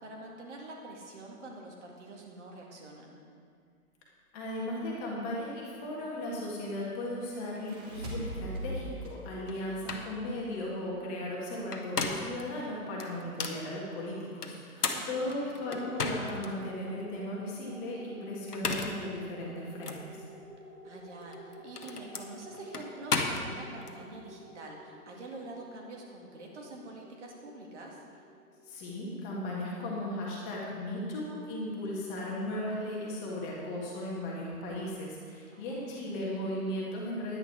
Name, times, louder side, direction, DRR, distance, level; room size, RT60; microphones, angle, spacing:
voice 1, 0.0-3.2 9.7-10.1 14.7-15.5 20.8-28.0 35.5-36.1, right 2 dB, 50° right, -1 dB, 2.2 m, -46 dB
voice 2, 4.3-20.2 28.6-37.4, left 1 dB, 15° left, -4 dB, 1.8 m, -36 dB
sound 1, 7.4-10.8, right 1 dB, 25° right, 1.8 m, -41 dB
sound 2, 9.5-9.6 9.9-10.1 11.5-12.4 13.0-13.6 14.4-16.5 17.0-17.1 18.4-19.1 19.8-20.0 21.2-23.9, left 4 dB, 85° left, 1.3 m, -34 dB
sound 3, 15.6-30.4, right 1 dB, 5° right, 0.9 m, -52 dB
10.5 x 10.0 x 4.8 m, 2.1 s
hypercardioid pair, 150°, 46 cm